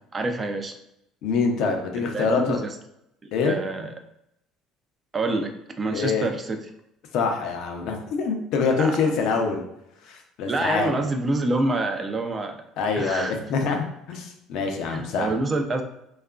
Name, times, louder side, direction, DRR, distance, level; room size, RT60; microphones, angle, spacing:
voice 1, 0.1-0.7 1.9-2.7 3.4-3.9 5.1-6.6 8.8-9.1 10.5-12.6 13.0-13.4 14.9-15.8, right 2 dB, 30° right, 5 dB, 0.3 m, -27 dB
voice 2, 1.2-2.6 3.3-3.6 5.9-6.3 7.1-9.6 10.0-11.0 12.8-15.3, left 4 dB, 70° left, 3 dB, 0.5 m, -25 dB
2.8 x 2.3 x 2.3 m, 0.80 s
supercardioid pair, 100°, 0 cm